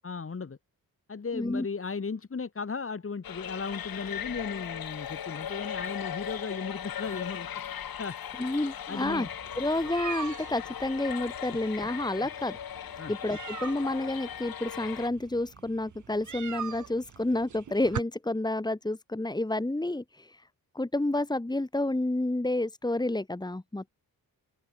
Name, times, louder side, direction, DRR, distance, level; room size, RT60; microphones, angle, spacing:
voice 1, 0.0-0.6 1.1-7.5 8.0-8.2 8.9-9.3 11.5-11.6 13.0-13.1, left 5 dB, 35° left, 5.4 m, -36 dB
voice 2, 1.3-1.6 8.4-9.3 9.6-12.6 13.1-20.4 20.7-23.9, left 2 dB, 10° left, 2.8 m, -30 dB
sound 1, 3.2-15.1, left 9 dB, 70° left, 2.4 m, -38 dB
sound 2, 9.1-18.0, right 8 dB, 55° right, 1.7 m, -43 dB
open air
wide cardioid pair, 125°, 36 cm